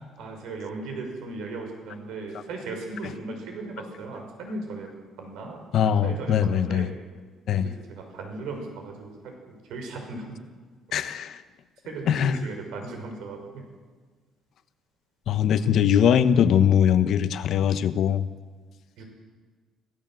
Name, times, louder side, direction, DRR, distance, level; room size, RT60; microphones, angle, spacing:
voice 1, 0.2-4.9 5.2-6.9 7.5-10.4 11.8-13.7 15.5-15.7 19.0-19.1, right 3 dB, 80° right, 3 dB, 6.1 m, -37 dB
voice 2, 5.7-6.9 7.5-7.7 10.9-11.3 12.1-12.4 15.3-18.3, left 9 dB, 55° left, 11 dB, 1.1 m, -21 dB
26.0 x 16.5 x 7.8 m, 1.5 s
cardioid pair, 155°, 0 cm